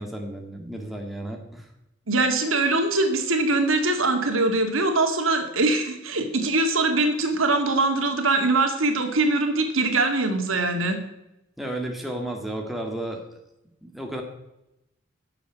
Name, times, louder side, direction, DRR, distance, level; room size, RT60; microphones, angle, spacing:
voice 1, 0.0-1.7 11.6-13.2 13.8-14.2, right 1 dB, ahead, 1 dB, 1.9 m, -33 dB
voice 2, 2.1-11.0, right 2 dB, 85° right, 5 dB, 2.1 m, -22 dB
11.0 x 7.0 x 9.1 m, 0.87 s
head